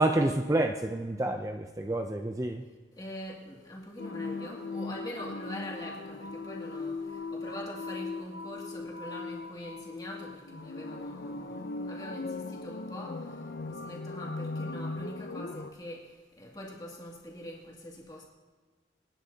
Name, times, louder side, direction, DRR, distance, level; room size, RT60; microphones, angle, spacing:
voice 1, 0.0-2.6, right 2 dB, 20° right, 5 dB, 0.4 m, -28 dB
voice 2, 3.0-7.0 7.3-13.2 13.7-16.0 16.4-18.2, left 1 dB, 20° left, -3 dB, 2.3 m, -43 dB
sound 1, 4.0-15.7, left 3 dB, 60° left, 0.6 m, -38 dB
27.5 x 9.9 x 2.8 m, 1.4 s
head